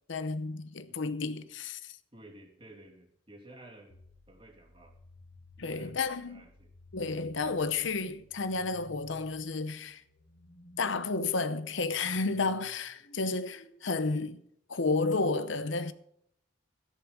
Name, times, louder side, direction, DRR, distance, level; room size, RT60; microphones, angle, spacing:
voice 1, 0.1-2.0 5.6-6.4 6.9-10.0 10.8-14.4 14.7-15.9, left 3 dB, 65° left, 0.8 m, -31 dB
voice 2, 0.9-1.2 2.1-4.0 4.3-5.0 5.6-6.7, right 1 dB, 25° right, 2.8 m, -53 dB
sound 1, 3.9-14.3, left 1 dB, 85° left, 2.1 m, -58 dB
14.0 x 10.5 x 5.2 m
head